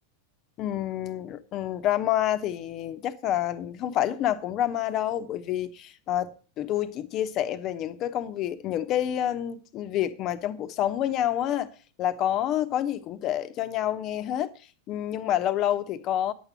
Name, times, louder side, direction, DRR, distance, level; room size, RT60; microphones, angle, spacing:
voice 1, 0.6-11.7 12.0-14.5 14.9-16.3, left 11 dB, 35° left, 1.0 m, -28 dB
10.5 x 8.2 x 7.0 m
figure-of-eight pair, 90°, 0 cm